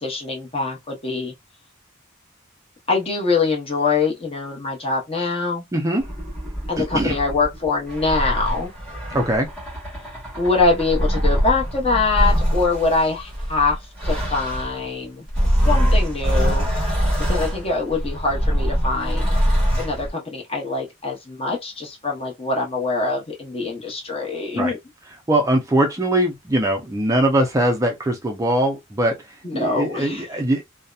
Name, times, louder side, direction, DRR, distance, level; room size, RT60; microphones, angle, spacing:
voice 1, 0.0-1.3 2.9-5.6 6.7-8.7 10.4-13.8 14.0-15.3 15.6-16.7 17.3-19.3 19.8-24.8 29.4-30.2, left 3 dB, 30° left, 0.8 m, -23 dB
voice 2, 5.7-6.1 6.8-7.2 9.1-9.5 24.5-24.7 25.3-29.1 29.5-30.6, right 1 dB, 15° right, 0.4 m, -21 dB
sound 1, 6.0-14.8 15.3-20.1, equal, 5° left, 1.0 m, -23 dB
2.7 x 2.1 x 2.3 m
head